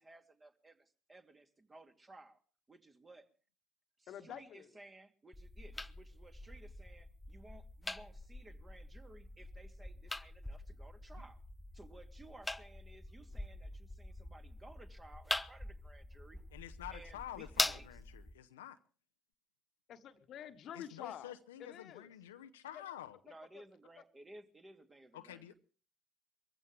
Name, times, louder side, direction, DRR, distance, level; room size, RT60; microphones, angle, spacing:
voice 1, 0.0-2.4 2.7-3.3 4.0-11.4 11.7-16.4 16.9-18.0 23.2-25.5, right 2 dB, 25° right, 2.5 m, -58 dB
voice 2, 4.1-4.8 19.9-22.1 22.7-22.8 23.3-23.6, left 10 dB, 55° left, 1.4 m, -49 dB
sound 1, 5.3-18.3, left 2 dB, 15° left, 0.8 m, -43 dB
voice 3, 16.5-18.8 20.7-23.2 25.1-25.5, left 12 dB, 80° left, 0.8 m, -49 dB
22.5 x 15.0 x 3.4 m
hypercardioid pair, 55°, 0 cm